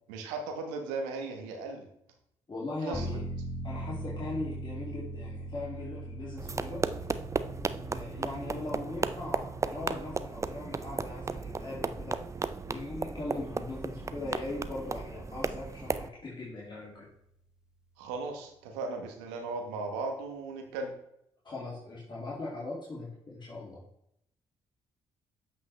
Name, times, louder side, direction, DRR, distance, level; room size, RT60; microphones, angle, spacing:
voice 1, 0.1-1.9 2.9-3.2 18.0-20.9, right 3 dB, 90° right, 4 dB, 1.1 m, -37 dB
voice 2, 2.5-3.2 3.6-6.8 7.9-12.2 12.7-17.1 21.4-23.8, left 2 dB, 35° left, -6 dB, 2.4 m, -39 dB
sound 1, 2.9-15.4 15.8-15.9, right 1 dB, 5° right, 1.4 m, -42 dB
sound 2, 6.4-16.1, right 4 dB, 25° right, 0.5 m, -35 dB
8.2 x 5.5 x 3.2 m, 0.77 s
hypercardioid pair, 50°, 13 cm